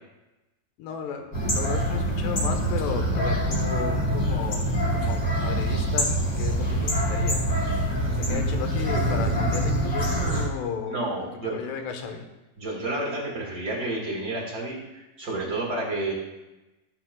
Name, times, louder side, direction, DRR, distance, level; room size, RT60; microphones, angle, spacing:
voice 1, 0.8-4.7 4.9-7.4 8.1-11.0 11.3-12.3, left 6 dB, 75° left, 5 dB, 3.0 m, -34 dB
sound 1, 1.3-10.5, right 1 dB, 30° left, 2.5 m, -25 dB
voice 2, 10.9-11.6 12.6-16.1, right 2 dB, 50° right, -3 dB, 1.2 m, -30 dB
15.0 x 10.0 x 2.2 m, 1.0 s
omnidirectional pair, 5.0 m